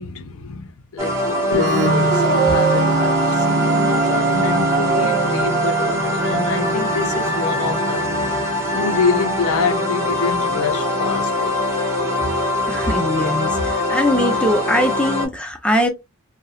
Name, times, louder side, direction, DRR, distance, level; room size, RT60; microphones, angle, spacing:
voice 1, 0.0-8.1 8.7-11.6, left 5 dB, 65° left, 0.4 m, -26 dB
sound 1, 1.0-15.3, equal, 15° right, 0.9 m, -22 dB
Organ, 1.5-9.0, right 3 dB, 50° right, 0.6 m, -25 dB
Dog, 1.8-8.4, right 2 dB, 85° right, 0.8 m, -26 dB
voice 2, 12.7-15.9, equal, 5° left, 0.5 m, -21 dB
2.9 x 2.0 x 2.3 m
head